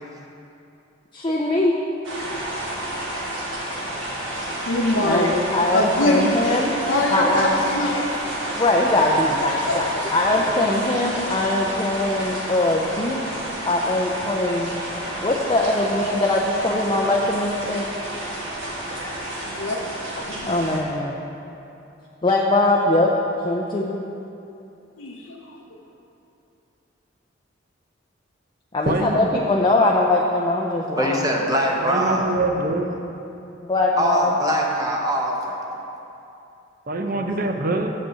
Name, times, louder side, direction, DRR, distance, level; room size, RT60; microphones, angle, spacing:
voice 1, 1.1-1.8 5.0-6.7 7.1-7.6 8.5-13.2 13.6-14.7 15.2-17.9 20.4-21.1 22.2-23.1 23.4-24.0 28.7-31.2 33.6-34.3 37.1-37.3, left 2 dB, 25° left, -2 dB, 0.5 m, -21 dB
sound 1, 2.0-20.8, right 1 dB, 80° right, 1.5 m, -30 dB
voice 2, 4.7-6.6 6.9-8.1 9.7-10.2 19.5-19.8 20.1-20.5 25.0-25.6, left 1 dB, 90° left, -1 dB, 0.8 m, -24 dB
voice 3, 28.9-29.3 31.8-33.0 36.9-37.9, right 2 dB, 50° right, 4 dB, 0.6 m, -24 dB
voice 4, 30.9-32.3 34.0-35.6, equal, 20° right, 0 dB, 0.9 m, -23 dB
7.5 x 5.3 x 6.8 m, 2.8 s
head